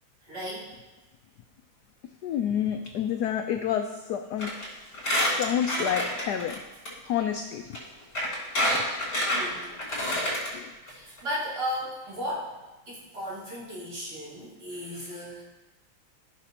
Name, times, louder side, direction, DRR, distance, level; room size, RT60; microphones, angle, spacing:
voice 1, 0.2-0.7 9.2-9.6 10.9-12.6 12.9-15.4, equal, 50° right, -9 dB, 3.6 m, -35 dB
voice 2, 2.2-4.5 5.4-6.6 7.1-7.8 10.5-10.7, left 9 dB, 85° left, 6 dB, 0.8 m, -29 dB
Squeak, 4.4-4.6 4.9-6.6 6.9-7.0 7.7-7.8 8.2-10.5 10.9-11.0 11.2-11.3, left 1 dB, 50° left, 4.4 m, -27 dB
15.5 x 6.0 x 2.9 m, 1.1 s
omnidirectional pair, 2.3 m